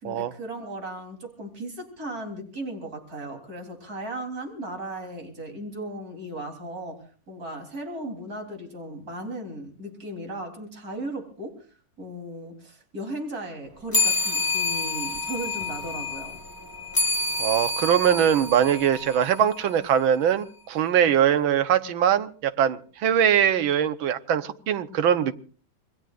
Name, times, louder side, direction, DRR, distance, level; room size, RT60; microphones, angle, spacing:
voice 1, 0.0-11.7 12.0-16.4, right 1 dB, 45° right, 4.0 m, -36 dB
sound 1, 13.9-19.7, left 2 dB, 10° left, 1.3 m, -28 dB
voice 2, 17.4-25.3, right 9 dB, 85° right, 1.8 m, -22 dB
27.0 x 21.0 x 2.5 m
omnidirectional pair, 2.1 m